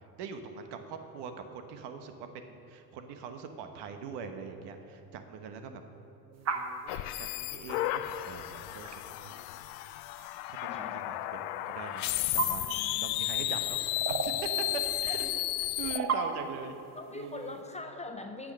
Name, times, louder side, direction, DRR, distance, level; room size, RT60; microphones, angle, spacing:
voice 1, 0.2-1.3 1.7-5.8 6.3-9.3 10.6-12.1 12.3-12.6 13.0-13.8 14.1-14.6 15.0-15.3 15.8-16.8 17.1-17.6, right 6 dB, 60° right, 7 dB, 1.2 m, -42 dB
sound 1, 6.5-6.7 8.1-8.2 8.8-9.0 10.2-10.3 10.7-10.9 11.6-13.0 13.5-14.4 14.8-14.9 15.7-16.5, right 6 dB, 35° right, 1.0 m, -33 dB
sound 2, 6.9-16.0, left 16 dB, 70° left, 0.6 m, -33 dB
voice 2, 12.7-13.1 15.1-15.4 17.0-18.5, left 2 dB, 15° left, 5 dB, 0.5 m, -42 dB
9.7 x 6.5 x 6.5 m, 2.9 s
supercardioid pair, 90°, 46 cm